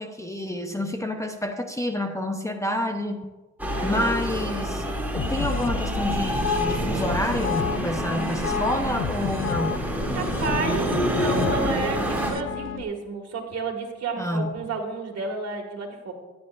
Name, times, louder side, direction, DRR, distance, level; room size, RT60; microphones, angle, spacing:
voice 1, 0.0-3.3 3.8-4.8 5.1-9.8 14.2-14.6, left 1 dB, 10° left, 5 dB, 0.9 m, -28 dB
sound 1, 3.6-12.3, right 1 dB, 5° right, 2.7 m, -27 dB
voice 2, 3.7-4.5 10.1-16.1, right 4 dB, 55° right, 4 dB, 2.1 m, -31 dB
sound 2, 5.2-12.8, left 8 dB, 40° left, 0.5 m, -31 dB
14.0 x 10.5 x 2.6 m, 1.2 s
cardioid pair, 90°, 30 cm